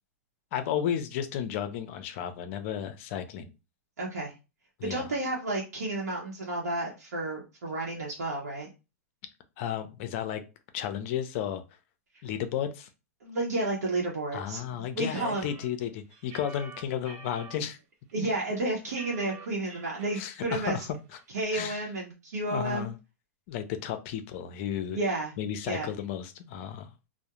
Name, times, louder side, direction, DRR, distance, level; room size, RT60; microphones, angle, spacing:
voice 1, 0.5-3.5 4.8-5.1 9.6-10.4 10.7-11.6 12.2-12.9 14.3-17.8 18.2-18.3 20.2-20.9 21.5-21.9 22.5-23.0 23.5-25.0 25.4-26.9, left 9 dB, 50° left, 0.5 m, -33 dB
voice 2, 4.0-4.3 4.9-8.7 13.2-15.5 18.1-20.8 21.3-22.9 24.9-25.3 25.7-25.9, right 2 dB, 85° right, 0.8 m, -31 dB
sound 1, 15.1-17.6 18.1-18.2 18.5-20.2 20.5-20.6 20.9-21.4, right 5 dB, 55° right, 0.9 m, -48 dB
2.3 x 2.0 x 2.9 m
hypercardioid pair, 120°, 9 cm